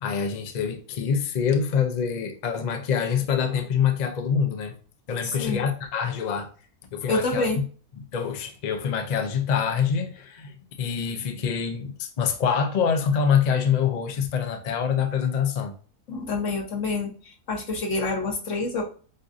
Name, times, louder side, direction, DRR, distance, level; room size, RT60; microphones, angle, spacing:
voice 1, 0.0-4.7 5.1-6.5 6.9-7.5 8.1-15.7, left 7 dB, 75° left, 0.4 m, -25 dB
voice 2, 5.2-5.6 7.1-7.6 16.1-18.8, left 3 dB, 55° left, 1.4 m, -27 dB
7.7 x 2.6 x 2.6 m
omnidirectional pair, 1.6 m